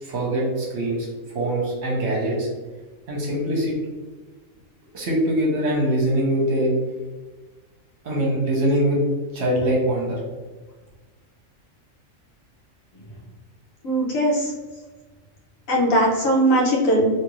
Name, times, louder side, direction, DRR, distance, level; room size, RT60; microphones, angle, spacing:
voice 1, 0.0-2.5 3.1-3.7 4.9-6.7 8.0-9.0 9.3-10.2, right 1 dB, 60° right, -3 dB, 1.0 m, -23 dB
voice 2, 13.8-14.5 15.7-17.1, right 1 dB, 85° left, -2 dB, 1.2 m, -19 dB
2.9 x 2.5 x 3.0 m, 1.3 s
omnidirectional pair, 1.4 m